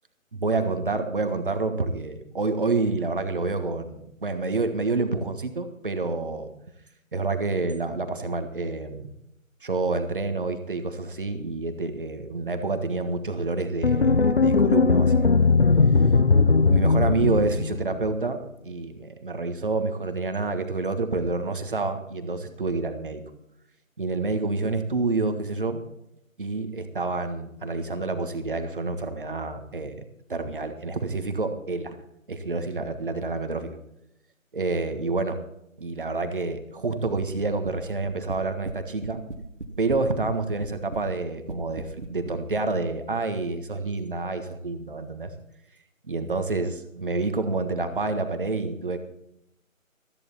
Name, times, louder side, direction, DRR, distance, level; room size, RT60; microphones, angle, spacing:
voice 1, 0.3-6.5 7.1-9.1 9.6-15.4 16.7-18.4 18.6-23.2 24.0-25.8 26.4-30.0 30.3-32.0 32.3-33.8 34.5-35.4 35.8-39.2 39.8-45.3 46.1-49.0, right 3 dB, 40° right, 8 dB, 1.5 m, -28 dB
sound 1, 13.8-18.1, left 4 dB, 50° left, 0.8 m, -19 dB
sound 2, 37.2-37.7 38.0-38.8 39.0-40.4 40.6-41.0 41.5-42.4, right 3 dB, 55° right, 1.7 m, -37 dB
15.0 x 14.0 x 4.2 m, 0.80 s
figure-of-eight pair, 155°, 41 cm